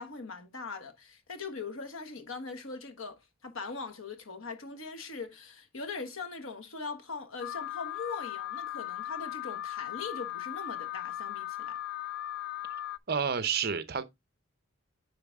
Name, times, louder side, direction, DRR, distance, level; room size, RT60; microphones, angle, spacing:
voice 1, 0.0-11.8, left 4 dB, 80° left, 1.4 m, -41 dB
Alarm, 7.4-13.0, left 13 dB, 50° left, 0.4 m, -38 dB
voice 2, 13.1-14.0, right 6 dB, 50° right, 0.8 m, -29 dB
9.6 x 4.0 x 3.6 m
head